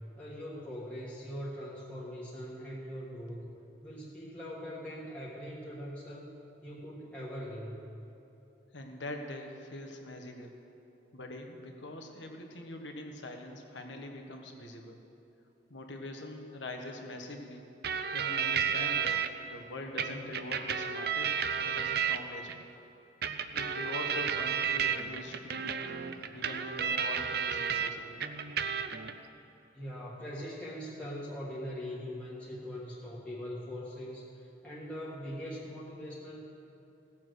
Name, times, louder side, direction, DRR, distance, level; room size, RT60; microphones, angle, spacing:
voice 1, 0.1-3.5 3.8-6.4 6.6-7.8 29.7-36.4, equal, 5° left, -7 dB, 1.5 m, -41 dB
voice 2, 8.7-10.5 11.1-15.0 15.7-17.6 18.1-22.5 23.5-25.8 26.3-28.2, left 1 dB, 75° left, 3 dB, 1.4 m, -43 dB
sound 1, 17.8-19.3 20.0-22.6 23.2-27.9 28.2-29.1, right 7 dB, 55° right, 0.6 m, -32 dB
17.5 x 7.3 x 6.4 m, 2.9 s
head